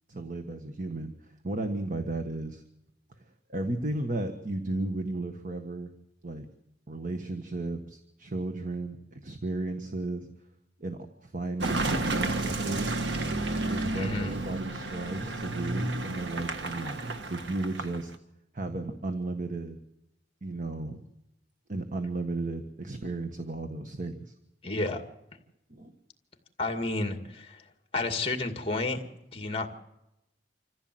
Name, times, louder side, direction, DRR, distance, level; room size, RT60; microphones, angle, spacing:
voice 1, 0.1-2.6 3.2-5.9 6.2-6.5 6.9-10.3 10.8-13.0 13.7-18.1 18.5-19.8 20.4-21.0 21.7-24.3 25.7-25.9, right 2 dB, 45° right, 6 dB, 1.5 m, -34 dB
Car passing by / Engine, 11.6-18.2, right 2 dB, 80° right, 1.5 m, -31 dB
voice 2, 13.9-14.3 24.6-25.0 26.6-27.6 27.9-29.1 29.3-29.7, left 2 dB, 35° left, 6 dB, 2.2 m, -31 dB
26.5 x 15.0 x 7.8 m, 0.88 s
head